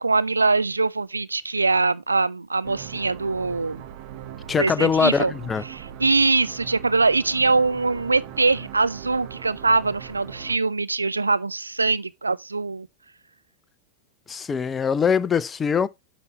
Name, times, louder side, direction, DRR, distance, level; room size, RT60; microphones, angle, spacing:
voice 1, 0.0-3.8 4.6-5.3 5.7-12.9, right 3 dB, 80° right, 0.4 m, -22 dB
sound 1, 2.6-10.6, right 9 dB, 45° right, 0.9 m, -40 dB
voice 2, 4.5-5.6 14.3-15.9, left 6 dB, 20° left, 0.4 m, -22 dB
9.5 x 5.2 x 2.8 m
figure-of-eight pair, 90°, 0 cm